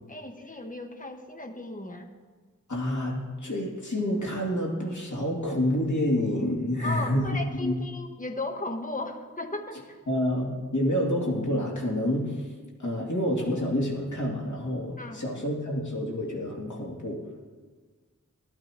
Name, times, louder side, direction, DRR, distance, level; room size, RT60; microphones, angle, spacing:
voice 1, 0.1-2.1 6.8-10.0 15.0-15.3, left 2 dB, 25° left, 5 dB, 1.1 m, -36 dB
voice 2, 2.7-7.8 10.1-12.5 12.8-17.2, left 1 dB, 70° left, -2 dB, 2.6 m, -28 dB
15.5 x 12.0 x 3.0 m, 1.4 s
wide cardioid pair, 80°, 31 cm